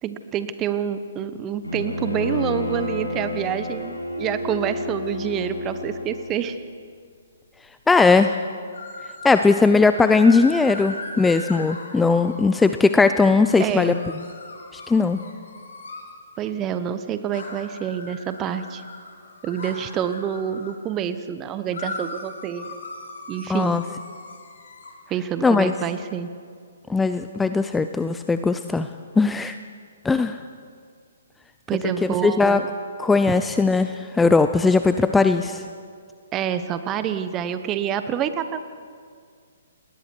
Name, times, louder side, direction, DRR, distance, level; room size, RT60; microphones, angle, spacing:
voice 1, 0.0-6.6 13.6-14.0 16.4-18.8 19.4-22.8 23.3-23.7 25.1-26.3 31.7-32.7 36.3-38.6, right 9 dB, 20° right, 11 dB, 1.1 m, -27 dB
Bowed string instrument, 1.6-6.5, left 2 dB, 80° left, 6.2 m, -30 dB
voice 2, 7.9-8.4 9.2-14.0 14.7-15.2 23.5-23.8 25.4-25.7 26.9-28.9 29.2-29.6 30.0-30.4 32.0-32.6 33.0-35.6, left 4 dB, 5° left, 9 dB, 0.5 m, -19 dB
sound 1, 8.7-9.4 9.9-12.7 13.5-16.1 17.3-20.8 21.7-24.9, left 2 dB, 55° left, 6.4 m, -38 dB
29.5 x 21.0 x 4.7 m, 2.1 s
figure-of-eight pair, 125°, 0 cm